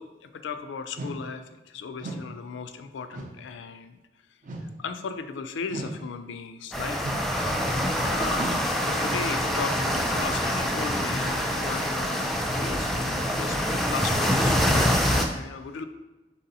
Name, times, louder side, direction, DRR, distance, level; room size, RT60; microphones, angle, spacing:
voice 1, 0.0-4.0 4.8-7.1 8.1-12.2 12.5-13.6 13.9-15.9, left 5 dB, 80° left, 9 dB, 0.4 m, -36 dB
sound 1, 0.9-1.2 2.0-2.3 3.1-3.4 4.4-4.8 5.7-6.0 7.0-7.4 8.3-8.7, right 2 dB, 45° right, 0.6 m, -36 dB
sound 2, 6.7-15.2, equal, ahead, 0.3 m, -25 dB
4.1 x 2.8 x 3.9 m, 1.1 s
head